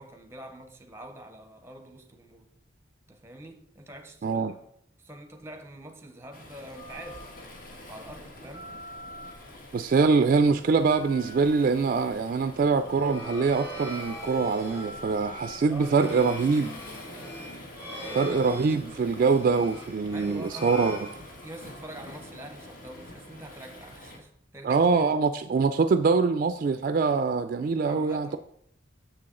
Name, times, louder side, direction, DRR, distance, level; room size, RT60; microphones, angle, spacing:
voice 1, 0.0-2.5 3.1-4.6 5.0-7.3 7.9-8.7 15.7-16.4 20.1-20.8 21.4-25.3 27.8-28.4, right 1 dB, 15° right, 0.7 m, -45 dB
voice 2, 4.2-4.5 9.7-16.7 18.1-21.1 24.6-28.4, right 4 dB, 45° right, 0.3 m, -24 dB
Waves surf, 6.3-24.2, left 1 dB, 50° left, 1.2 m, -47 dB
Telephone, 6.8-16.3, left 1 dB, 65° left, 1.4 m, -47 dB
sound 1, 12.7-21.8, equal, 10° left, 2.0 m, -41 dB
6.9 x 5.9 x 3.7 m
head